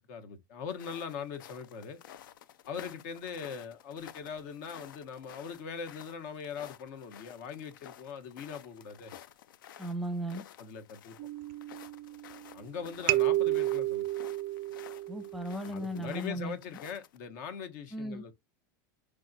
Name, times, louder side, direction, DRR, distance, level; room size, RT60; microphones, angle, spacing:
voice 1, 0.1-2.0 2.7-9.1 10.6-11.2 12.5-14.1 15.6-18.3, left 6 dB, 60° left, 1.2 m, -41 dB
sound 1, 0.7-17.2, left 11 dB, 85° left, 0.5 m, -53 dB
voice 2, 9.8-10.4 15.1-16.6 17.9-18.2, right 1 dB, ahead, 0.7 m, -36 dB
sound 2, 11.2-12.6 13.1-15.8, right 17 dB, 50° right, 0.3 m, -31 dB
4.9 x 3.7 x 2.7 m
supercardioid pair, 135°, 11 cm